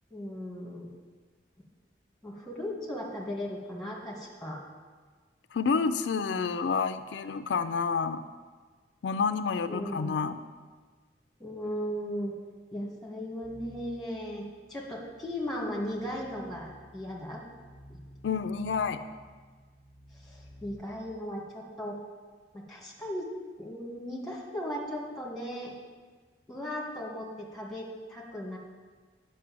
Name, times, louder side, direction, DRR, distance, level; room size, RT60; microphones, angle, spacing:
voice 1, 0.1-0.9 2.2-4.6 9.7-10.2 11.4-12.3 12.7-17.4 17.9-18.0 20.1-22.0 22.5-23.3 23.6-25.7 26.5-28.6, equal, ahead, -3 dB, 1.8 m, -37 dB
voice 2, 5.5-8.2 9.0-10.4 18.2-19.0, left 5 dB, 80° left, 10 dB, 0.4 m, -29 dB
sound 1, 13.4-20.7, equal, 20° right, 2.2 m, -54 dB
9.5 x 5.4 x 7.7 m, 1.4 s
head